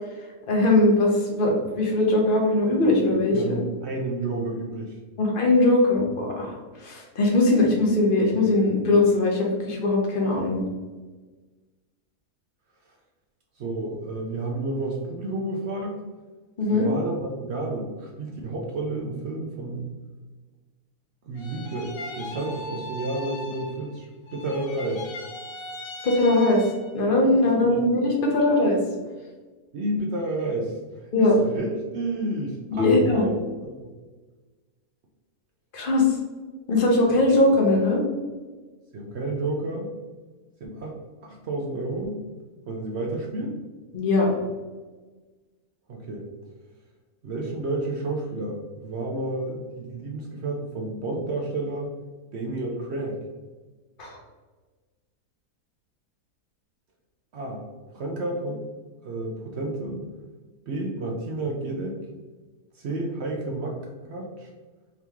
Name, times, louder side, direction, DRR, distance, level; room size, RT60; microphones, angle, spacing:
voice 1, 0.5-3.6 5.2-10.6 16.6-16.9 26.0-26.6 26.9-28.8 31.1-31.4 32.7-33.2 35.7-36.0 36.7-38.0 43.9-44.3 54.0-54.2, left 2 dB, 40° left, -1 dB, 0.9 m, -20 dB
voice 2, 3.3-5.0 13.6-16.0 16.7-19.9 21.3-25.1 27.7-27.8 29.7-31.7 31.9-33.9 38.9-39.9 40.6-41.0 41.2-42.2 42.7-43.6 45.9-46.2 47.2-51.9 52.3-53.2 57.3-57.6 57.9-58.6 59.0-60.0 60.7-62.1 62.8-64.5, right 2 dB, 65° right, 0 dB, 0.6 m, -30 dB
sound 1, 21.4-24.0 24.3-27.0, left 1 dB, 70° left, 0.9 m, -39 dB
3.7 x 3.0 x 3.5 m, 1.3 s
omnidirectional pair, 1.7 m